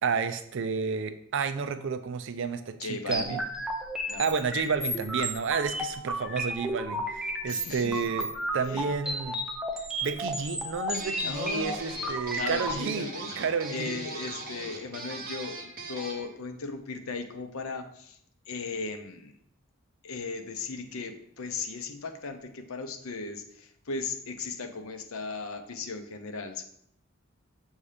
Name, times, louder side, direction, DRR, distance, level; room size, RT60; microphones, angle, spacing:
voice 1, 0.0-3.4 4.2-9.4 10.0-13.1 13.4-14.1, right 5 dB, 60° right, 10 dB, 0.4 m, -31 dB
voice 2, 2.8-3.4 4.1-4.2 7.5-8.0 8.7-9.1 11.2-11.8 12.3-13.3 13.7-18.2 18.5-19.4 20.0-26.6, left 4 dB, 75° left, 7 dB, 0.7 m, -37 dB
sound 1, 3.1-12.7, equal, 5° right, 0.6 m, -33 dB
sound 2, 10.9-16.3, right 3 dB, 45° right, 1.0 m, -40 dB
7.0 x 2.8 x 4.9 m, 0.69 s
head